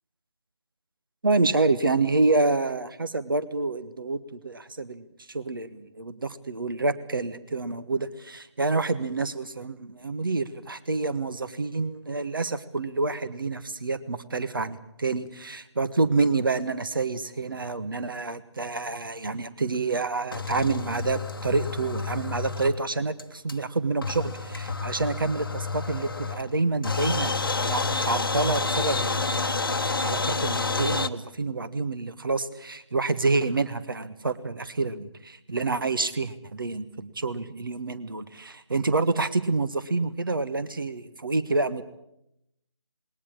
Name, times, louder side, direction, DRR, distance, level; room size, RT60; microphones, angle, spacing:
voice 1, 1.2-41.8, right 3 dB, 45° right, 13 dB, 1.4 m, -28 dB
sound 1, 20.3-22.9 23.2-23.3 23.5-23.6 24.0-26.6 26.8-31.1, left 4 dB, 50° left, 1.1 m, -29 dB
20.5 x 19.0 x 8.7 m, 0.81 s
figure-of-eight pair, 160°, 15 cm